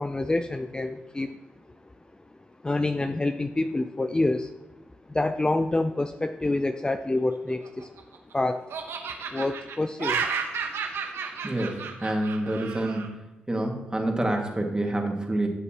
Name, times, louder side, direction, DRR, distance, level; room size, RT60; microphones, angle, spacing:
voice 1, 0.0-1.4 2.6-4.5 5.1-7.9 8.3-8.7 9.3-10.3, left 2 dB, 20° left, 9 dB, 0.5 m, -27 dB
Laughter, 7.5-8.3 8.7-13.1, right 6 dB, 70° right, 1.0 m, -32 dB
voice 2, 11.4-13.2 13.5-15.5, right 1 dB, 20° right, 2 dB, 2.0 m, -27 dB
13.0 x 6.8 x 3.0 m, 0.98 s
hypercardioid pair, 40°, 4 cm